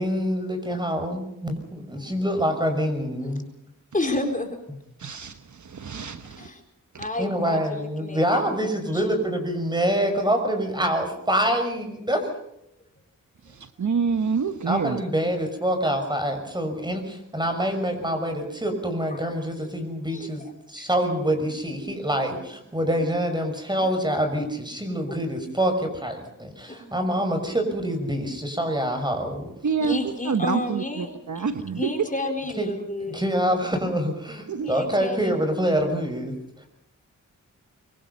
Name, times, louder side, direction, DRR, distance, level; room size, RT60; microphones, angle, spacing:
voice 1, 0.0-3.5 7.2-12.3 14.7-20.4 20.7-29.5 32.6-32.7 33.0-36.7, equal, 15° right, 5 dB, 6.1 m, -26 dB
voice 2, 3.9-4.6 6.4-6.6 7.0-8.5 8.9-9.0 18.1-18.4 19.1-19.2 19.6-19.7 20.1-20.3 20.8-20.9 24.4-24.5 25.1-25.2 26.7-27.0 29.8-31.5 31.8-33.1 34.6-35.3, left 2 dB, 25° left, 3 dB, 4.2 m, -31 dB
voice 3, 5.0-6.5 6.9-7.1 13.4-15.0 29.6-30.0 30.2-31.9 34.5-34.7, right 6 dB, 65° right, 9 dB, 1.3 m, -27 dB
24.5 x 24.0 x 5.5 m, 0.79 s
wide cardioid pair, 95°, 32 cm